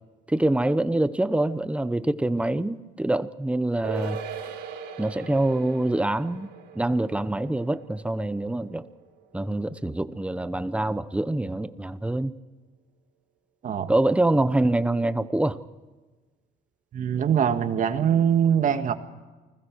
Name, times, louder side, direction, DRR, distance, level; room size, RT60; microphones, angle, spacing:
voice 1, 0.3-4.2 5.0-6.5 6.7-8.8 9.3-12.3 13.9-15.6, right 1 dB, 5° right, 13 dB, 1.0 m, -25 dB
sound 1, 3.8-10.5 10.8-10.9, right 6 dB, 85° right, 4.5 m, -40 dB
voice 2, 16.9-18.9, right 8 dB, 50° right, 8 dB, 1.7 m, -22 dB
29.5 x 20.5 x 4.8 m, 1.3 s
cardioid pair, 110°, 17 cm